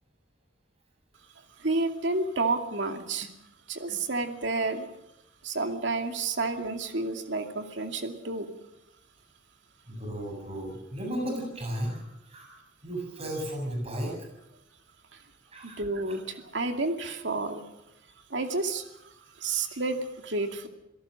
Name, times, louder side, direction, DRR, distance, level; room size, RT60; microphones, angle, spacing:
voice 1, 1.6-3.3 3.7-4.9 5.4-8.5 15.6-17.6 18.3-18.8 19.4-20.7, right 3 dB, 70° right, 5 dB, 2.4 m, -30 dB
voice 2, 9.9-12.5 12.8-14.3 15.5-15.8, right 1 dB, 30° right, 1 dB, 7.0 m, -34 dB
28.0 x 17.5 x 6.4 m, 0.89 s
head